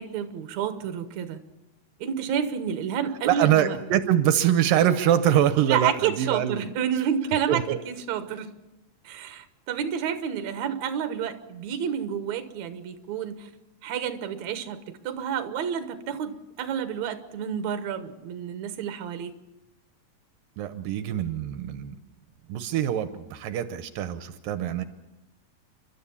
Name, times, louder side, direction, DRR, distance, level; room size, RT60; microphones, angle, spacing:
voice 1, 0.0-1.4 2.0-3.8 5.6-8.5 9.0-13.5 13.8-19.3, right 8 dB, 65° right, 9 dB, 2.3 m, -30 dB
voice 2, 3.2-6.7 7.5-7.8 20.6-22.0 22.5-24.8, right 11 dB, 80° right, 11 dB, 2.5 m, -24 dB
30.0 x 12.5 x 7.1 m, 1.0 s
omnidirectional pair, 4.0 m